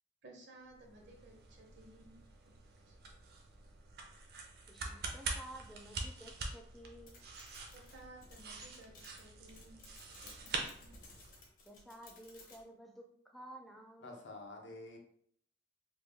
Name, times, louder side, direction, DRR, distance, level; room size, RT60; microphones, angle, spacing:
voice 1, 0.2-2.1 2.4-2.5 2.9-3.0 7.7-9.8 10.2-10.9, right 2 dB, 75° right, 0 dB, 0.8 m, -57 dB
sound 1, 0.7-11.5, right 3 dB, 55° right, 0.5 m, -45 dB
voice 2, 4.7-7.2 11.7-14.1, right 1 dB, ahead, 1 dB, 0.3 m, -53 dB
sound 2, 7.1-12.6, left 3 dB, 45° left, 0.6 m, -58 dB
voice 3, 14.0-15.0, left 2 dB, 80° left, 2 dB, 0.7 m, -48 dB
3.1 x 2.2 x 3.4 m, 0.66 s
head